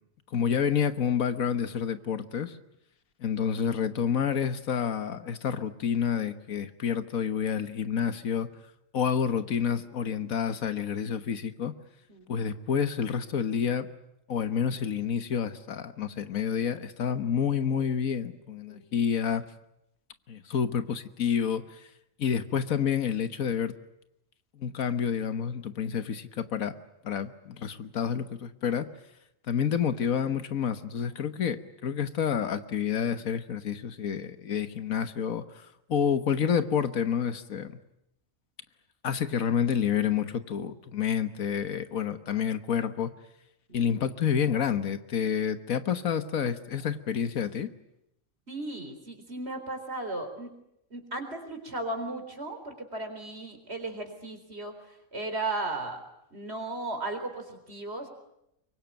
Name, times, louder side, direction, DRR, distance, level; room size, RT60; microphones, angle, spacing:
voice 1, 0.3-2.6 3.2-8.5 8.9-11.7 12.3-13.9 14.3-19.5 20.3-21.6 22.2-23.7 24.5-26.8 27.0-28.9 29.5-35.4 35.9-37.8 39.0-43.1 43.7-47.7, left 7 dB, 85° left, 11 dB, 1.7 m, -29 dB
voice 2, 48.5-50.5 50.9-56.0 56.3-58.1, right 2 dB, 50° right, 6 dB, 4.4 m, -36 dB
24.0 x 23.5 x 9.1 m, 0.81 s
omnidirectional pair, 1.4 m